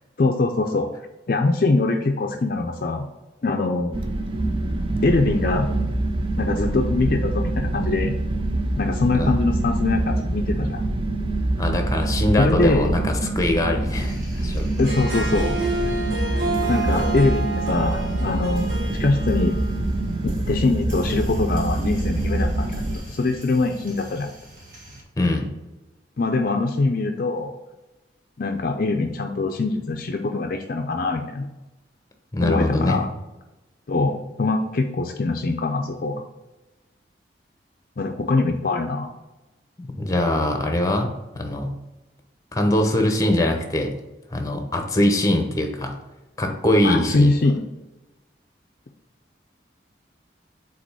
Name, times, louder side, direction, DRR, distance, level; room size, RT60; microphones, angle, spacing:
voice 1, 0.2-0.9 1.3-3.1 3.4-3.9 5.0-5.7 6.4-8.1 8.8-10.8 12.4-12.9 14.8-15.6 16.7-18.7 19.0-19.6 20.2-24.3 26.2-27.5 28.4-31.5 32.4-33.1 33.9-36.1 38.0-39.1 46.8-47.7, left 3 dB, 50° left, 4 dB, 0.5 m, -23 dB
sound 1, 3.9-23.0, right 2 dB, 30° right, 0.5 m, -25 dB
voice 2, 11.6-14.7 25.2-25.5 32.3-33.0 39.8-41.1 41.3-41.7 42.5-43.9 44.3-45.9 46.4-47.4, left 1 dB, 20° left, 4 dB, 0.8 m, -22 dB
sound 2, 13.9-25.0, right 1 dB, 45° right, 1.7 m, -40 dB
Harp, 14.7-20.2, right 2 dB, 85° right, 1.3 m, -29 dB
5.1 x 4.0 x 5.5 m, 1.1 s
head